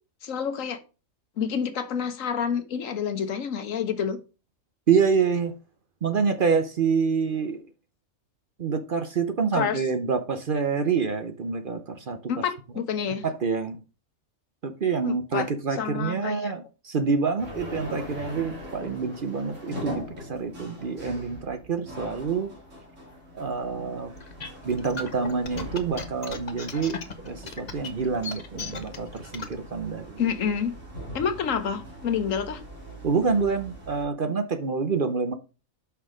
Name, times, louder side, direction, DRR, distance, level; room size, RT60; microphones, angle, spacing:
voice 1, 0.2-0.8 1.4-4.2 9.5-9.8 12.3-13.2 15.0-15.5 15.8-16.5 30.2-30.7 31.1-32.6, left 7 dB, 75° left, 1.3 m, -28 dB
voice 2, 4.9-5.5 6.0-7.6 8.6-12.2 13.2-13.8 14.6-22.5 23.3-24.1 24.6-30.2 33.0-35.3, right 5 dB, 45° right, 0.8 m, -27 dB
sound 1, 17.4-34.0, equal, 65° right, 2.8 m, -41 dB
sound 2, 24.2-29.5, left 4 dB, 35° left, 0.9 m, -36 dB
6.1 x 5.7 x 4.9 m
omnidirectional pair, 1.4 m